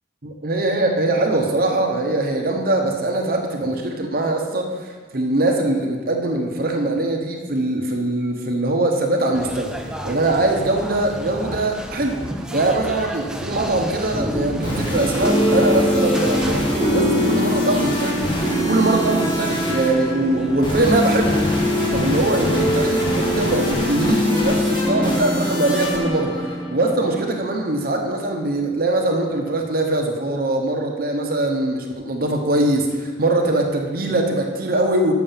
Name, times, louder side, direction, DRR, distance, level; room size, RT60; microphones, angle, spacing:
voice 1, 0.2-12.3 12.5-21.4 21.9-35.1, right 2 dB, 55° right, 2 dB, 0.9 m, -22 dB
sound 1, 9.3-23.8, equal, 5° right, 0.5 m, -31 dB
sound 2, 14.4-27.2, left 1 dB, 25° left, 1.6 m, -22 dB
7.1 x 6.3 x 5.6 m, 1.5 s
head